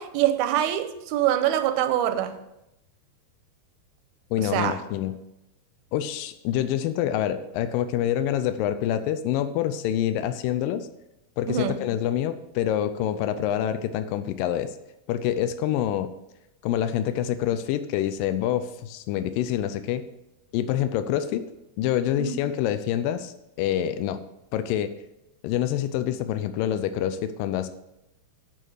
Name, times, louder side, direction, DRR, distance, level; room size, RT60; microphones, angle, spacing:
voice 1, 0.0-2.4 4.4-4.8 11.5-11.8 22.2-22.4, right 11 dB, 85° right, 2.4 m, -24 dB
voice 2, 4.3-5.2 5.9-10.9 11.4-14.7 15.1-16.1 16.6-20.0 20.5-21.4 21.8-24.2 24.5-24.9 25.4-27.7, left 11 dB, 85° left, 1.9 m, -26 dB
11.0 x 5.4 x 6.4 m
omnidirectional pair, 4.6 m